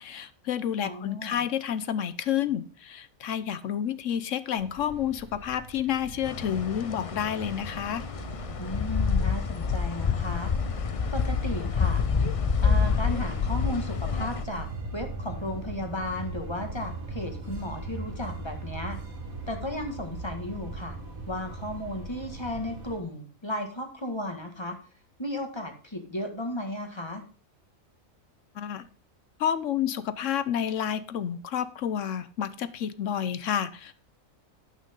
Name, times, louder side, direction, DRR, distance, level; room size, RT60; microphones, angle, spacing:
voice 1, 0.0-8.0 28.5-28.8 29.4-33.9, left 9 dB, 70° left, 14 dB, 1.0 m, -30 dB
voice 2, 0.8-1.4 8.6-10.5 11.1-12.0 12.6-14.7 14.9-19.0 19.5-21.0 21.3-24.8 25.2-27.2, left 1 dB, 20° left, 4 dB, 1.9 m, -34 dB
sound 1, 4.6-23.0, right 2 dB, 85° right, 2.5 m, -39 dB
sound 2, 6.2-14.5, left 6 dB, 45° left, 0.4 m, -28 dB
12.0 x 9.1 x 3.7 m, 0.36 s
omnidirectional pair, 1.4 m